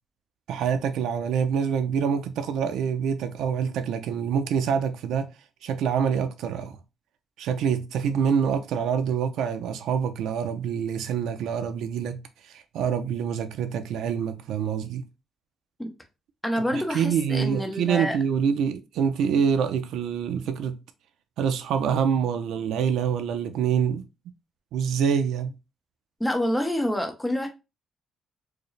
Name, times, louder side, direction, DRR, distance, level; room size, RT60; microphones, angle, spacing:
voice 1, 0.5-5.3 5.6-6.8 7.4-12.2 12.5-15.0 16.7-20.8 21.4-24.0 24.7-25.5, right 7 dB, 80° right, 0.5 m, -26 dB
voice 2, 16.4-18.2 26.2-27.5, equal, 5° left, 0.7 m, -27 dB
4.6 x 2.1 x 3.1 m
cardioid pair, 155°, 0 cm